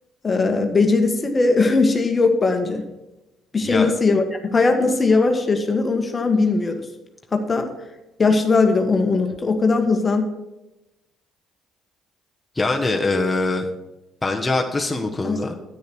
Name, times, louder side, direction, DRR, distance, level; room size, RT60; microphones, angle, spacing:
voice 1, 0.2-2.8 3.5-6.9 7.3-7.7 8.2-10.2 15.2-15.4, left 3 dB, 35° left, 5 dB, 1.5 m, -19 dB
voice 2, 3.6-3.9 12.6-13.6 14.2-15.5, left 2 dB, 15° left, 1 dB, 1.4 m, -23 dB
10.0 x 9.8 x 4.7 m, 0.98 s
hypercardioid pair, 55°, 0 cm